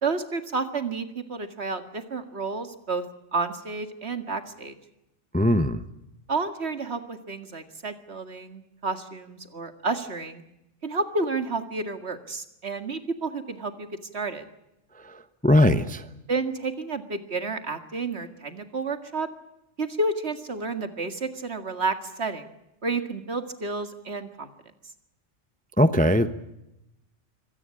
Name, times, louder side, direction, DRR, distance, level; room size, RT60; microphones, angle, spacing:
voice 1, 0.0-3.0 3.3-4.7 6.3-10.4 10.8-14.5 16.3-19.3 19.8-22.5 22.8-24.5, right 3 dB, 55° right, 8 dB, 2.2 m, -30 dB
voice 2, 5.3-5.8 15.4-16.0 25.8-26.3, left 1 dB, 10° left, 11 dB, 0.8 m, -19 dB
25.0 x 17.5 x 8.5 m, 0.89 s
omnidirectional pair, 1.3 m